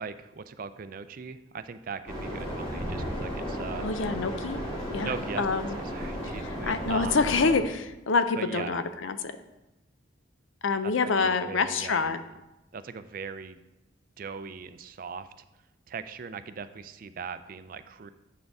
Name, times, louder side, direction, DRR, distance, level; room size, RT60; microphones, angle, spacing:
voice 1, 0.0-3.9 5.0-5.5 5.8-7.2 8.4-8.8 11.0-12.1 12.7-13.6 14.2-15.3 15.9-18.1, right 5 dB, 45° right, 12 dB, 0.4 m, -39 dB
sound 1, 2.1-7.6, equal, 30° left, 2.5 m, -34 dB
voice 2, 3.8-4.6 4.9-5.8 6.2-9.4 10.6-12.2, left 4 dB, 75° left, 11 dB, 0.5 m, -27 dB
8.2 x 6.4 x 3.5 m, 0.98 s
head